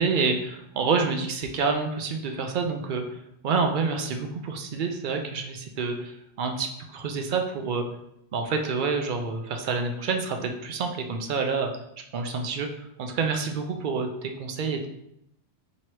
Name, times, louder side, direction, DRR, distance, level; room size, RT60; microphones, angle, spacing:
voice 1, 0.0-3.0 3.4-7.8 8.3-11.7 12.1-12.7 13.0-14.9, right 4 dB, 60° right, 4 dB, 0.6 m, -28 dB
3.0 x 2.8 x 4.5 m, 0.78 s
omnidirectional pair, 1.1 m